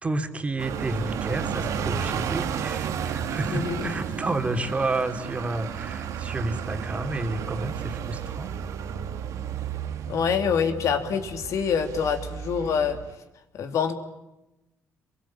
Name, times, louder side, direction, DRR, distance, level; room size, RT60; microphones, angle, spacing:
voice 1, 0.0-8.6, right 2 dB, 20° right, 6 dB, 3.3 m, -30 dB
sound 1, 0.6-13.2, right 8 dB, 70° right, 2.1 m, -32 dB
voice 2, 3.5-3.9 10.1-13.0 13.5-13.9, left 7 dB, 60° left, 7 dB, 3.1 m, -26 dB
28.5 x 22.5 x 8.8 m, 0.96 s
cardioid pair, 115°, 6 cm